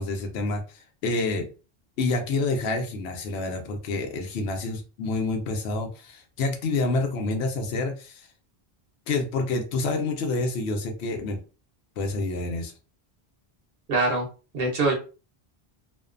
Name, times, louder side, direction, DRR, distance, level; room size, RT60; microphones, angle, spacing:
voice 1, 0.0-1.5 2.0-8.3 9.1-11.4 12.0-12.7, left 3 dB, 85° left, 4 dB, 0.8 m, -28 dB
voice 2, 13.9-14.3 14.5-14.9, right 2 dB, 70° right, -1 dB, 1.0 m, -23 dB
2.5 x 2.1 x 2.4 m, 0.34 s
omnidirectional pair, 1.1 m